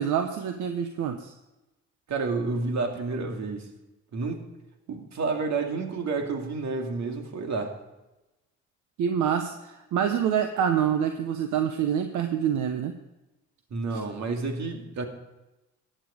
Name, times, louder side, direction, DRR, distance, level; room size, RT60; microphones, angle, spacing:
voice 1, 0.0-1.3 9.0-12.9 13.9-14.0, right 8 dB, 80° right, 1.0 m, -26 dB
voice 2, 2.1-3.7 4.1-4.4 4.9-7.8 13.7-15.1, right 3 dB, 65° right, 2.3 m, -30 dB
14.5 x 10.0 x 5.0 m
cardioid pair, 90°, 30 cm